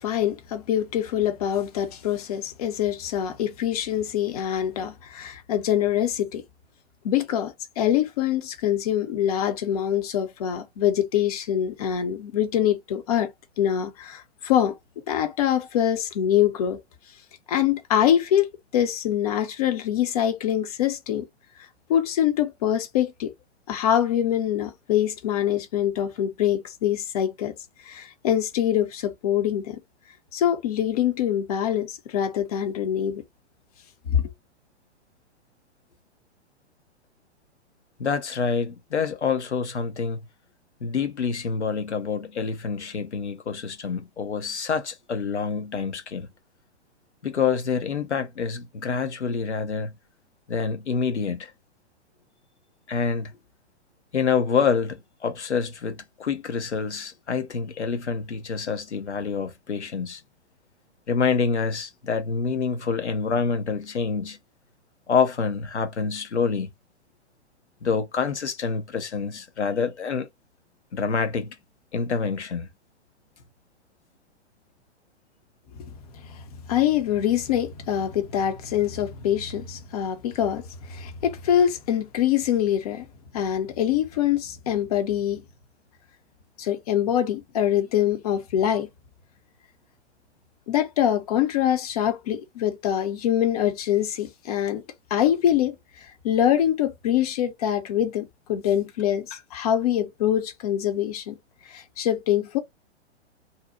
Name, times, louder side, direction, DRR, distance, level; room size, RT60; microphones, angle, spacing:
voice 1, 0.0-6.4 7.0-13.3 13.6-14.7 15.1-16.8 17.5-18.5 18.7-21.3 21.9-23.3 23.7-27.5 27.8-29.8 30.3-33.2 34.1-34.3 75.8-75.9 76.2-83.1 83.3-85.4 86.6-88.9 90.7-94.8 95.1-101.4 101.7-102.6, left 10 dB, 35° left, 0.6 m, -24 dB
voice 2, 38.0-40.2 40.8-46.3 47.2-49.9 50.5-51.5 52.9-53.3 54.1-60.2 61.1-64.4 65.1-66.7 67.8-70.3 70.9-71.6 71.9-72.7, left 5 dB, 75° left, 0.7 m, -27 dB
2.7 x 2.0 x 2.3 m
figure-of-eight pair, 110°, 34 cm